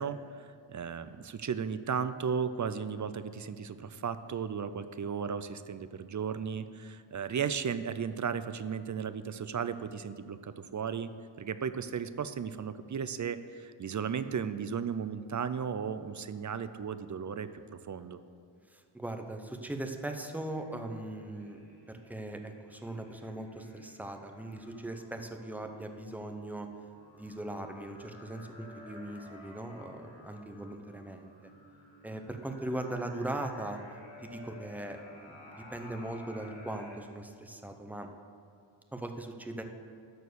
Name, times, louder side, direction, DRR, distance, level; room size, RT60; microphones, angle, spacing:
voice 1, 0.0-11.1 11.4-18.2, right 7 dB, 40° right, 12 dB, 0.4 m, -35 dB
voice 2, 18.7-21.6 21.9-26.7 27.2-31.5 32.0-33.8 34.2-38.1 38.9-39.6, right 1 dB, 5° right, 5 dB, 0.8 m, -39 dB
sound 1, 19.8-37.0, left 2 dB, 65° left, 2.7 m, -54 dB
12.5 x 4.5 x 6.9 m, 2.6 s
wide cardioid pair, 95°, 50 cm